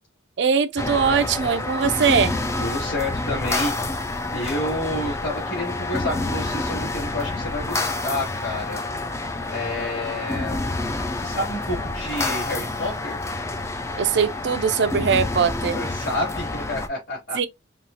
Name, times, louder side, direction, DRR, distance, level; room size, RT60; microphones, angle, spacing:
voice 1, 0.4-2.3 14.0-15.8 17.3-17.5, right 6 dB, 60° right, 0.4 m, -21 dB
sound 1, 0.8-16.9, left 2 dB, 15° left, 0.3 m, -28 dB
voice 2, 2.6-3.7 4.3-8.8 9.5-10.5 11.1-13.2 15.7-17.4, left 1 dB, 65° left, 2.9 m, -29 dB
5.4 x 2.4 x 2.7 m
head